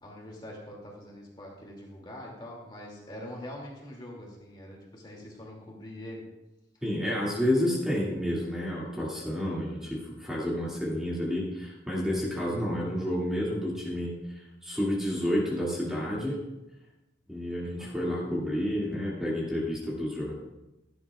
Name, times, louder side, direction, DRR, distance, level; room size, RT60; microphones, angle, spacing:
voice 1, 0.0-6.2 17.8-18.4, left 1 dB, 25° left, -2 dB, 2.5 m, -44 dB
voice 2, 6.8-16.4 17.3-20.5, equal, 5° right, -6 dB, 2.3 m, -30 dB
16.0 x 11.5 x 2.4 m, 0.98 s
head